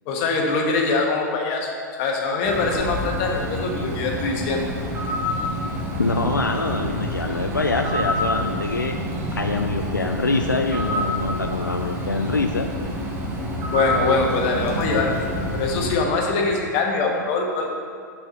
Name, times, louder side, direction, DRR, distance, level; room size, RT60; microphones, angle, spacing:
voice 1, 0.1-1.7 2.0-4.6 13.6-15.2 15.5-17.7, left 3 dB, 45° left, 1 dB, 1.2 m, -23 dB
Bird, 2.4-16.0, equal, 20° right, 1.2 m, -28 dB
voice 2, 6.0-9.0 9.4-12.7, left 3 dB, 90° left, 4 dB, 0.4 m, -24 dB
5.9 x 4.6 x 5.4 m, 2.2 s
figure-of-eight pair, 95°, 10 cm